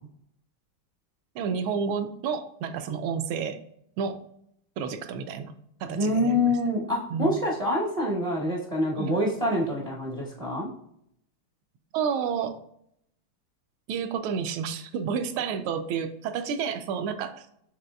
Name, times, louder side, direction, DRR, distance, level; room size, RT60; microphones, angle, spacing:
voice 1, 1.3-3.6 4.0-4.2 4.8-5.5 5.8-6.5 7.1-7.4 9.0-9.2 11.9-12.6 13.9-17.5, right 6 dB, 85° right, 8 dB, 1.4 m, -30 dB
voice 2, 5.9-10.7, left 1 dB, 55° right, -3 dB, 0.4 m, -26 dB
6.7 x 3.2 x 2.2 m, 0.72 s
omnidirectional pair, 2.3 m